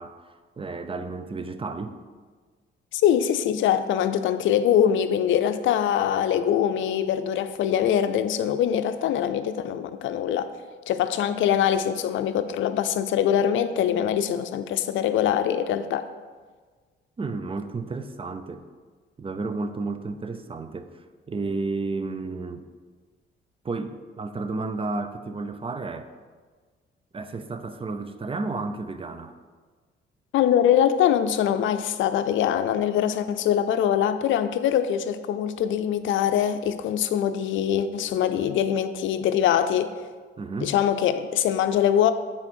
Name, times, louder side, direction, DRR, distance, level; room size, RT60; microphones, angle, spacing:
voice 1, 0.0-2.0 17.2-18.6 19.2-22.7 23.6-26.1 27.1-29.4 40.4-40.8, right 3 dB, 25° right, 9 dB, 0.6 m, -32 dB
voice 2, 2.9-10.5 10.9-16.0 30.3-39.9 40.6-42.1, left 9 dB, 75° left, 11 dB, 0.5 m, -23 dB
7.1 x 4.4 x 6.2 m, 1.5 s
cardioid pair, 90°, 20 cm